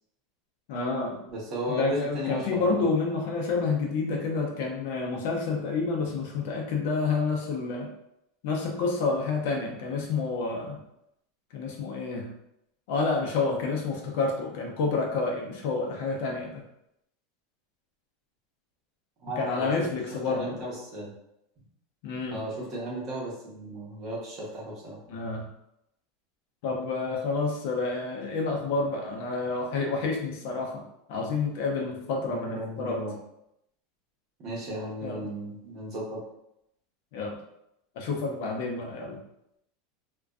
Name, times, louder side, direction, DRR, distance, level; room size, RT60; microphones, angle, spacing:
voice 1, 0.7-1.2 1.7-7.9 8.4-10.8 11.5-12.3 12.9-16.6 19.4-20.6 22.0-22.4 25.1-25.5 26.6-30.8 31.1-33.0 35.0-35.2 37.1-37.4 38.0-39.2, left 4 dB, 60° left, 1 dB, 0.5 m, -29 dB
voice 2, 1.3-2.7 19.2-19.7 20.3-21.1 22.3-25.0 32.2-33.1 34.4-36.2, equal, 30° right, -5 dB, 0.8 m, -35 dB
2.4 x 2.2 x 2.3 m, 0.80 s
supercardioid pair, 165°, 0 cm